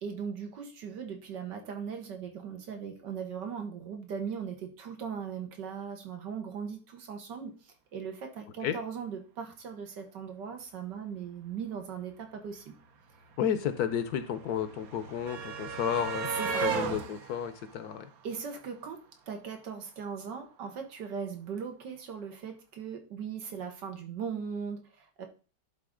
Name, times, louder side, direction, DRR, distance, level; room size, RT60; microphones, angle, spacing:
voice 1, 0.0-12.8 16.3-16.7 18.2-19.0 19.3-25.3, right 6 dB, 85° right, 4 dB, 1.9 m, -39 dB
sound 1, 12.5-12.6 12.7-18.9 20.1-20.2 20.5-20.6, right 5 dB, 60° right, 1.2 m, -36 dB
voice 2, 13.4-16.3 16.6-18.1, left 9 dB, 65° left, 11 dB, 1.1 m, -32 dB
11.0 x 3.9 x 3.7 m, 0.35 s
omnidirectional pair, 1.9 m